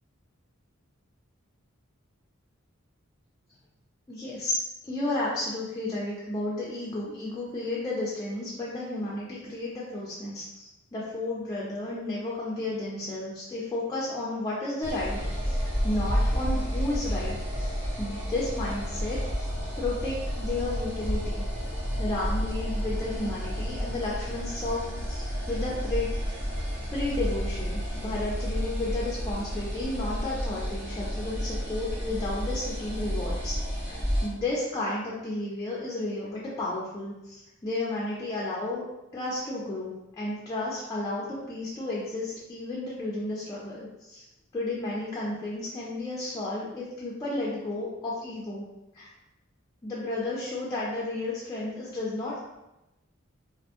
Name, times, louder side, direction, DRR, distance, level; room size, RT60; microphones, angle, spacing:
voice 1, 4.1-4.6 4.8-19.5 19.8-21.5 21.9-26.1 26.9-33.5 33.9-38.8 39.1-44.2 44.5-48.7 48.9-49.1 49.8-52.4, left 2 dB, 20° left, -7 dB, 0.4 m, -32 dB
sound 1, 14.8-34.3, equal, 10° right, 0.7 m, -31 dB
2.4 x 2.1 x 2.7 m, 0.95 s
head